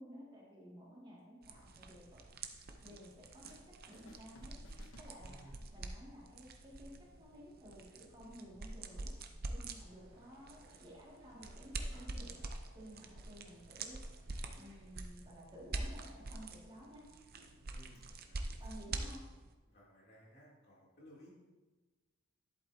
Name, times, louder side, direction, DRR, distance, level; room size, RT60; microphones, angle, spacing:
voice 1, 0.0-2.2 2.8-4.6 5.0-5.4 5.7-9.1 9.5-12.4 12.7-14.0 14.6-17.0 17.3-17.5 18.6-19.2, equal, 25° right, -5 dB, 2.2 m, -54 dB
sound 1, 1.4-19.5, right 2 dB, 45° right, 0.6 m, -46 dB
sound 2, 2.9-3.7 3.9-5.7, left 2 dB, 70° left, 0.9 m, -62 dB
voice 2, 5.2-5.7 17.7-19.1 19.7-21.3, equal, 50° left, -6 dB, 2.9 m, -60 dB
sound 3, 9.5-15.0, right 1 dB, 65° right, 3.1 m, -67 dB
11.0 x 8.2 x 2.8 m, 1.2 s
head